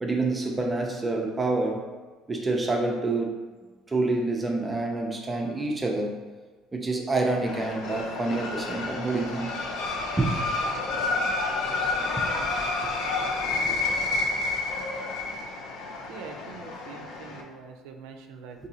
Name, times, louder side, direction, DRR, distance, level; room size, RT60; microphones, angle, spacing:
voice 1, 0.0-1.8 2.3-3.4 3.9-6.2 6.7-9.5 10.2-10.3 12.8-12.9 13.6-14.0 18.6-18.7, right 2 dB, 20° right, 1 dB, 0.4 m, -27 dB
sound 1, 7.5-17.4, left 3 dB, 75° left, 0.5 m, -29 dB
voice 2, 16.1-18.7, right 5 dB, 85° right, 4 dB, 0.3 m, -44 dB
3.8 x 2.6 x 2.7 m, 1.3 s
cardioid pair, 110°, 0 cm